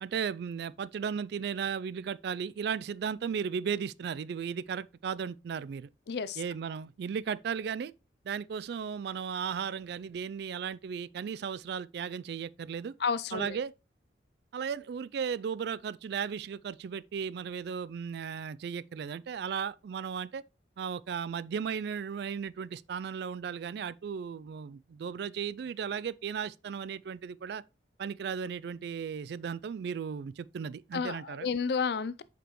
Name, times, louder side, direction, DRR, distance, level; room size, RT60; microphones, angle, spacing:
voice 1, 0.0-5.9 6.4-7.9 8.2-12.9 13.3-13.7 14.5-20.4 20.8-27.6 28.0-31.5, right 7 dB, 60° right, 0.3 m, -35 dB
voice 2, 6.1-6.4 13.0-13.6 30.9-32.2, left 5 dB, 60° left, 0.4 m, -31 dB
7.8 x 5.0 x 3.0 m
head